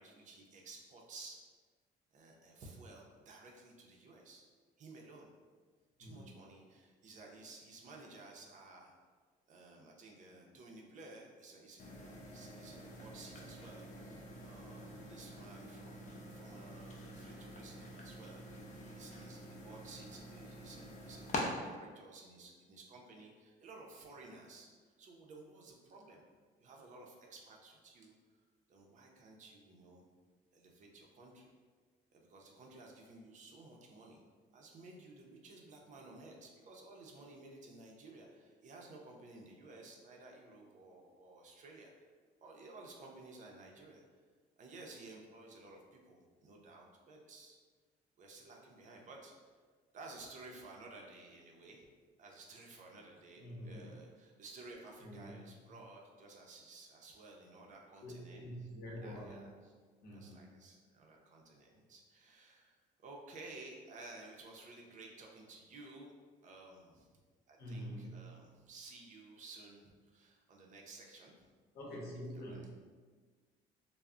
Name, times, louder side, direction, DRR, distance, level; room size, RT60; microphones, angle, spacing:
voice 1, 0.0-1.4 2.1-4.5 4.8-5.3 6.0-8.9 9.5-26.2 26.6-28.1 28.7-30.0 30.5-31.5 32.1-34.2 34.5-42.1 42.4-44.2 44.6-47.6 48.2-49.3 49.9-51.9 52.2-58.7 59.0-59.7 60.1-66.1 66.4-67.1 67.5-71.5 72.3-72.6, right 2 dB, 45° right, 0 dB, 0.5 m, -55 dB
sound 1, 11.8-21.4, left 1 dB, 45° left, 0.5 m, -47 dB
voice 2, 53.4-54.0 55.0-55.5 58.0-59.5 60.0-60.5 67.6-68.3 71.7-72.7, equal, 70° left, -3 dB, 0.8 m, -46 dB
2.2 x 2.0 x 3.6 m, 1.5 s
cardioid pair, 110°, 17 cm